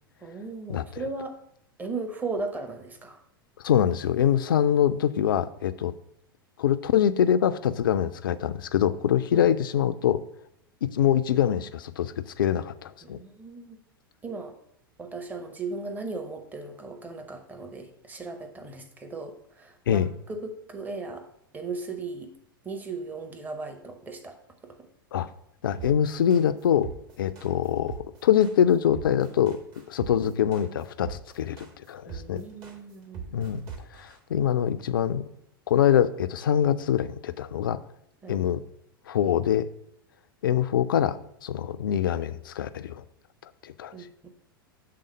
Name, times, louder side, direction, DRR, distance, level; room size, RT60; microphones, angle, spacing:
voice 1, 0.2-1.3 1.8-3.2 9.3-9.5 13.0-13.8 14.2-14.5 15.0-21.3 21.5-22.3 22.6-24.9 32.1-33.3 38.2-38.4 43.9-44.3, right 3 dB, 15° right, 5 dB, 0.8 m, -37 dB
voice 2, 3.6-5.9 6.6-10.2 10.8-13.2 19.9-20.1 25.1-25.3 25.6-26.9 27.2-29.6 29.9-32.4 33.3-33.6 33.9-35.2 35.7-37.8 38.3-38.6 39.1-39.7 40.4-43.0 43.4-43.9, left 9 dB, 65° left, 12 dB, 0.4 m, -24 dB
sound 1, 25.8-34.2, right 6 dB, 35° right, 1.3 m, -41 dB
6.7 x 3.6 x 5.3 m, 0.73 s
figure-of-eight pair, 90°, 12 cm